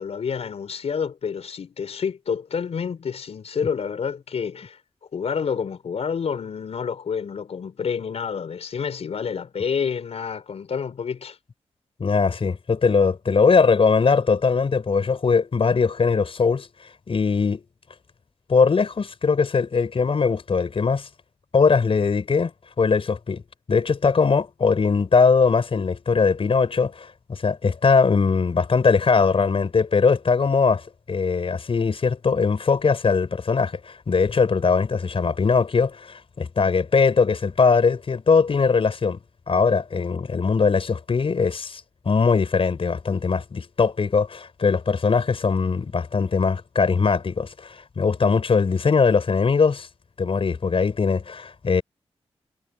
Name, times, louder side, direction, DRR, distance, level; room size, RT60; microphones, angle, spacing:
voice 1, 0.0-4.8 5.1-11.4, left 6 dB, 75° left, 4.6 m, -28 dB
voice 2, 12.0-16.7 17.1-17.6 18.5-21.1 21.5-22.5 22.8-23.4 23.7-39.2 39.5-49.9 50.2-51.8, left 5 dB, 60° left, 4.8 m, -20 dB
cardioid pair, 50°, 11 cm